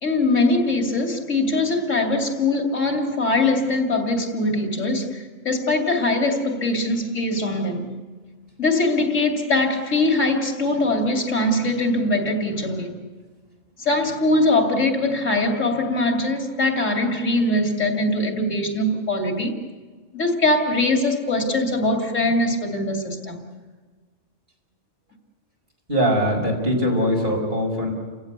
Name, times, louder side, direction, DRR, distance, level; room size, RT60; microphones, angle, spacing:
voice 1, 0.0-7.9 8.6-13.0 13.8-19.5 20.1-23.4, left 2 dB, 85° left, 3 dB, 3.1 m, -22 dB
voice 2, 25.9-27.9, equal, 45° right, -1 dB, 5.7 m, -21 dB
29.5 x 16.0 x 8.2 m, 1.4 s
omnidirectional pair, 1.3 m